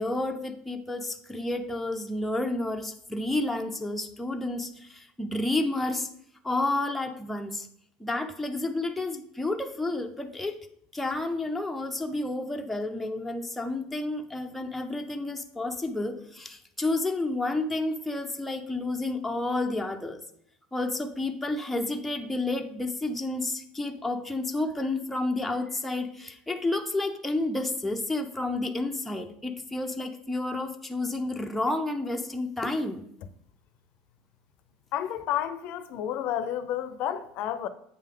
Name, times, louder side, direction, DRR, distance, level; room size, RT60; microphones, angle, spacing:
voice 1, 0.0-6.1 6.4-7.7 8.0-10.6 10.9-20.2 20.7-33.0, left 2 dB, 5° left, 0.6 m, -30 dB
voice 2, 34.9-37.7, left 10 dB, 50° left, 0.5 m, -31 dB
8.2 x 5.4 x 3.8 m
supercardioid pair, 140°, 3 cm